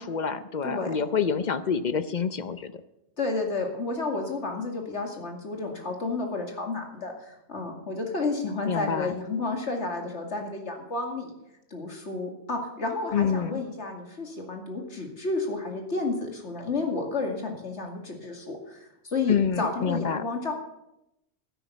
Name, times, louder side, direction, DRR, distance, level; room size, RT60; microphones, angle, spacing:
voice 1, 0.0-2.8 8.7-9.1 13.1-13.6 19.3-20.2, left 6 dB, 45° left, 12 dB, 0.7 m, -27 dB
voice 2, 0.6-0.9 3.2-11.3 11.7-20.5, left 3 dB, 70° left, 2 dB, 2.7 m, -31 dB
12.0 x 10.5 x 6.9 m, 0.85 s
omnidirectional pair, 1.2 m